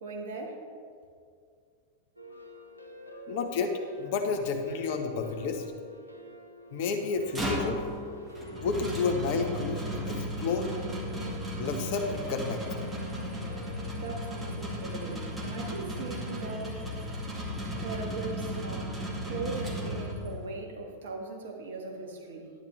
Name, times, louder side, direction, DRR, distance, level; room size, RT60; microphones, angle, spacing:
voice 1, 0.0-0.6 13.9-16.8 17.8-18.9 19.3-22.5, right 3 dB, 60° right, 1 dB, 1.5 m, -39 dB
sound 1, 2.2-15.3, equal, 90° right, 0.7 m, -47 dB
voice 2, 3.1-5.6 6.7-8.1 8.6-10.7 11.6-12.9 13.1-13.3, left 4 dB, 50° left, 5 dB, 1.1 m, -31 dB
sound 2, 7.0-20.5, equal, 15° right, 1.7 m, -35 dB
11.0 x 9.6 x 3.2 m, 2.2 s
figure-of-eight pair, 90°, 0 cm